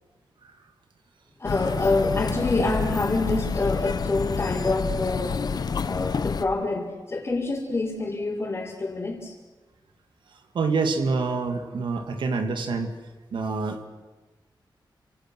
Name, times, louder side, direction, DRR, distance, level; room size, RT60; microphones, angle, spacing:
sound 1, 1.4-6.4, left 5 dB, 55° left, 1.1 m, -28 dB
voice 1, 1.4-5.4 5.8-9.3, left 2 dB, 30° left, -6 dB, 4.7 m, -26 dB
voice 2, 10.5-12.9 13.3-13.8, right 4 dB, 80° right, 6 dB, 2.5 m, -26 dB
30.0 x 26.5 x 6.4 m, 1.2 s
wide cardioid pair, 135°, 8 cm